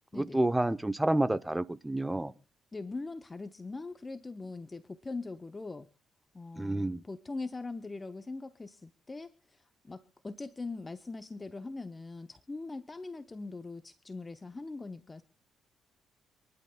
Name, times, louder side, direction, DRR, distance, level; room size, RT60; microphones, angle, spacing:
voice 1, 0.1-2.3 6.6-7.0, right 1 dB, 10° right, 0.7 m, -29 dB
voice 2, 2.7-5.9 6.3-15.2, left 3 dB, 20° left, 0.7 m, -41 dB
26.5 x 11.0 x 2.2 m
cardioid pair, 90°, 0 cm